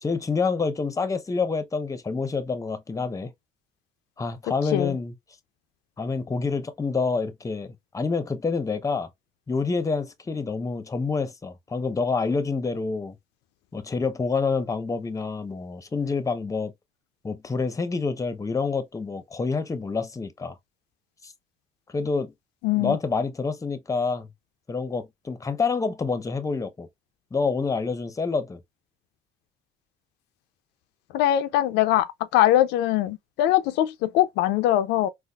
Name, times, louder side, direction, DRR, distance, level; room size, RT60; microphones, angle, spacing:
voice 1, 0.0-3.3 4.2-5.1 6.0-9.1 9.5-13.2 13.7-16.7 17.2-20.6 21.2-21.3 21.9-22.3 22.7-24.3 24.7-26.9 27.3-28.6, left 4 dB, 20° left, 0.7 m, -27 dB
voice 2, 22.6-23.0 31.1-32.1 32.3-35.1, left 13 dB, 85° left, 0.4 m, -22 dB
4.0 x 2.4 x 2.3 m
cardioid pair, 90°, 17 cm